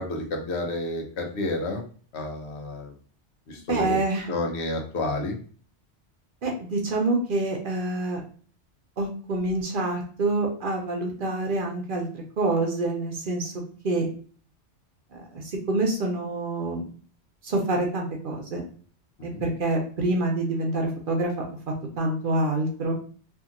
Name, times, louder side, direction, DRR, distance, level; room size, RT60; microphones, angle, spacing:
voice 1, 0.0-1.8 2.1-2.9 3.5-4.0 4.3-5.4 19.3-19.4, left 2 dB, 80° left, 3 dB, 0.9 m, -30 dB
voice 2, 3.7-4.3 6.4-8.2 9.0-12.1 12.4-13.5 13.8-14.1 15.1-16.8 17.4-18.6 19.2-21.4 22.0-23.0, right 2 dB, 55° right, 0 dB, 0.7 m, -26 dB
2.7 x 2.5 x 2.4 m, 0.43 s
omnidirectional pair, 1.1 m